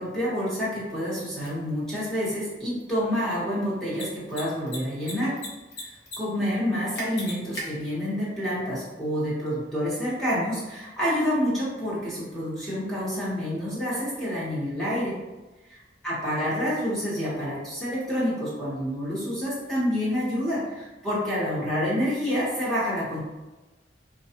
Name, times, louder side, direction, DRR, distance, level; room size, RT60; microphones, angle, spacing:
voice 1, 0.0-5.4 5.7-15.2 15.6-23.2, equal, ahead, -8 dB, 1.1 m, -28 dB
Mechanisms, 1.4-1.5 3.8-4.0 4.3-4.4 4.7-5.5 5.7-6.2 6.4-6.5 7.0-7.6, left 1 dB, 80° left, 1.0 m, -35 dB
4.5 x 2.3 x 2.8 m, 1.1 s
head